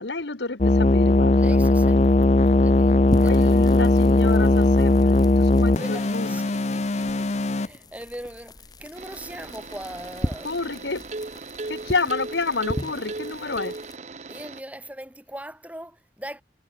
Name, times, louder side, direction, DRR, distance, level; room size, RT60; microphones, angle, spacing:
voice 1, 0.0-1.6 3.2-6.3 10.4-11.0 11.7-13.7, left 3 dB, 75° left, 1.5 m, -29 dB
sound 1, 0.6-7.7, left 2 dB, 40° left, 0.6 m, -18 dB
voice 2, 1.4-3.7 5.8-10.5 14.3-16.4, right 1 dB, 10° right, 7.5 m, -40 dB
sound 2, 3.1-14.0, equal, 20° left, 3.3 m, -37 dB
sound 3, 8.9-14.6, right 3 dB, 40° right, 0.8 m, -37 dB
head